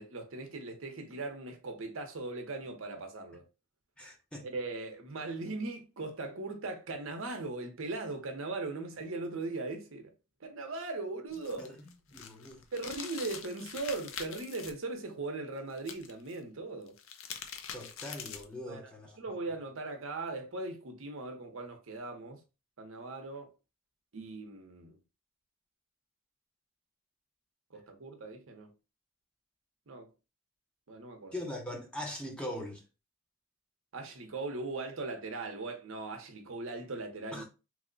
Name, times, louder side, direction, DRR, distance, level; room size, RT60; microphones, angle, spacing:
voice 1, 0.0-3.4 4.4-10.1 10.4-11.7 12.7-17.0 18.6-22.4 22.8-23.5 24.1-25.0 27.7-28.7 29.9-30.1 30.9-31.3 33.9-37.4, right 3 dB, 70° right, 0.7 m, -39 dB
voice 2, 4.0-4.5 11.6-11.8 12.1-12.6 17.7-19.2 31.3-32.8 37.3-37.4, left 1 dB, 5° left, 0.6 m, -41 dB
sound 1, 11.3-14.7 15.8-16.4 16.9-18.6, left 7 dB, 65° left, 0.5 m, -44 dB
3.0 x 2.1 x 3.7 m
head